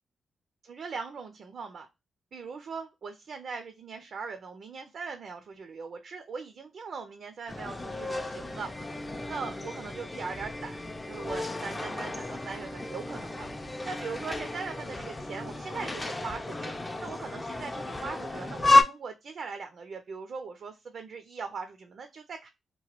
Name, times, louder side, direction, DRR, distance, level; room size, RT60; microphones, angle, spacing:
voice 1, 0.6-1.9 2.3-8.9 9.3-13.5 13.8-16.8 17.0-22.5, right 5 dB, 55° right, 7 dB, 0.4 m, -40 dB
sound 1, 7.5-18.8, left 2 dB, 15° left, 0.4 m, -31 dB
2.9 x 2.1 x 2.9 m, 0.23 s
wide cardioid pair, 140°, 0 cm